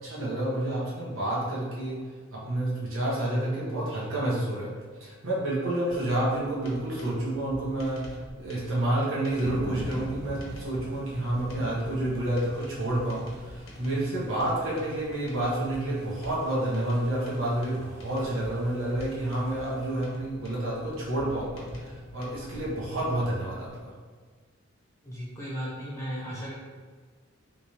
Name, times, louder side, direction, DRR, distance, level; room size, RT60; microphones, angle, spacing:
voice 1, 0.0-2.0 2.5-4.7 5.0-8.0 8.3-23.9, right 1 dB, 75° right, -6 dB, 1.2 m, -29 dB
morse code, 5.9-23.8, equal, 85° left, 0.7 m, -45 dB
sound 1, 9.4-20.1, equal, 55° right, 0.9 m, -45 dB
voice 2, 25.0-26.5, equal, 15° left, -7 dB, 0.9 m, -35 dB
3.4 x 3.1 x 2.8 m, 1.5 s
head